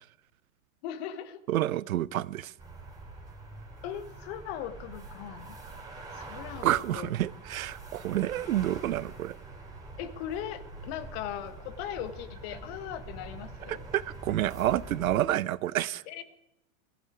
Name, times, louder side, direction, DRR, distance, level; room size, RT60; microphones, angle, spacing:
voice 1, 0.8-1.4 3.8-5.6 6.1-7.1 10.0-13.8 16.1-16.3, left 10 dB, 50° left, 1.5 m, -39 dB
voice 2, 1.5-2.5 6.3-9.3 13.7-16.0, right 13 dB, 90° right, 0.7 m, -29 dB
sound 1, 2.6-15.2, right 2 dB, 10° right, 4.8 m, -45 dB
16.5 x 14.0 x 4.9 m
hypercardioid pair, 130°, 41 cm